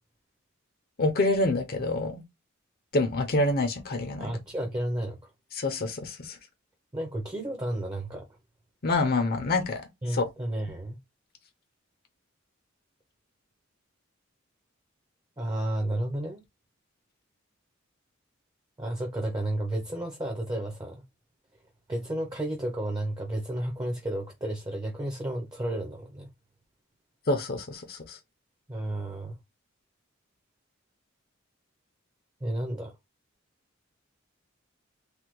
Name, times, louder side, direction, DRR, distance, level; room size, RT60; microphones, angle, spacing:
voice 1, 1.0-2.2 2.9-4.3 5.5-6.4 8.8-9.8 10.1-10.3 27.3-28.2, left 2 dB, 50° left, 0.6 m, -27 dB
voice 2, 4.2-5.2 6.9-8.3 10.0-11.0 15.4-16.4 18.8-21.0 21.9-26.3 28.7-29.4 32.4-32.9, right 1 dB, 20° right, 0.6 m, -32 dB
3.3 x 2.2 x 3.0 m
head